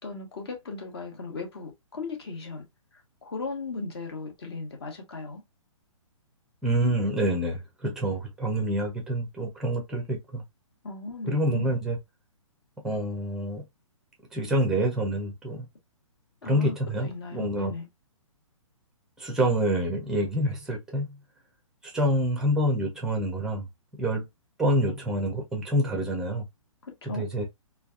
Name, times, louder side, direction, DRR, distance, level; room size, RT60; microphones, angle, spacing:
voice 1, 0.0-2.6 2.9-5.4 10.8-11.8 16.4-16.7 17.0-17.9 26.8-27.3, left 3 dB, 50° left, 1.2 m, -37 dB
voice 2, 6.6-10.4 11.3-12.0 12.8-13.6 14.3-15.7 16.4-17.7 19.2-21.2 21.8-23.6 24.0-24.3 24.6-26.4 27.1-27.5, right 1 dB, 5° right, 0.6 m, -27 dB
3.2 x 2.3 x 2.4 m
figure-of-eight pair, 125°, 17 cm